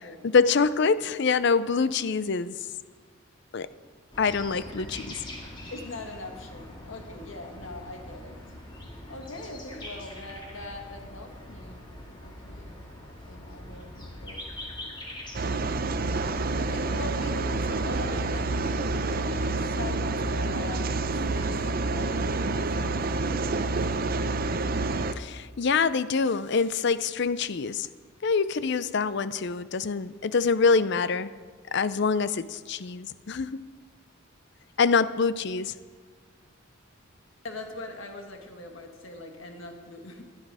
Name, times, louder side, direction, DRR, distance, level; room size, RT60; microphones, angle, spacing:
voice 1, 0.2-2.5 3.5-3.7 4.2-5.2 25.2-27.9 28.2-31.3 31.7-33.6 34.8-35.7, left 5 dB, 55° left, 15 dB, 0.5 m, -25 dB
sound 1, 4.1-18.7, left 1 dB, 20° left, 2.1 m, -43 dB
voice 2, 5.7-8.4 8.9-11.8 12.2-12.9 13.2-14.7 16.0-20.9 21.3-21.5 21.8-23.7 37.4-40.2, left 2 dB, 70° left, 4 dB, 1.8 m, -42 dB
sound 2, 15.3-25.1, right 3 dB, 45° right, 0.6 m, -28 dB
16.5 x 11.5 x 4.9 m, 1.5 s
head